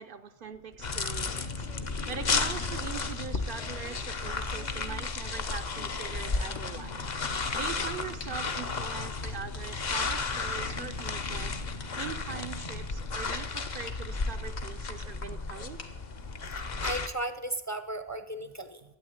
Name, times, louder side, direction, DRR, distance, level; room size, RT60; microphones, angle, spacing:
voice 1, 0.0-1.7 2.1-7.1 7.5-11.6 12.0-15.8 18.4-18.5, right 6 dB, 60° right, 8 dB, 0.8 m, -42 dB
sound 1, 0.5-3.9 4.2-7.9 8.2-8.3 8.6-8.8 9.2-9.6 10.1-11.1 11.8-12.1 12.4-12.5 13.2-13.9 14.6-15.9 16.2-16.6, left 4 dB, 85° left, 1.9 m, -48 dB
sound 2, 0.8-17.1, left 4 dB, 45° left, 0.9 m, -33 dB
voice 2, 16.8-18.8, right 1 dB, 20° left, 9 dB, 0.7 m, -35 dB
12.5 x 9.2 x 8.7 m, 0.98 s
omnidirectional pair, 1.1 m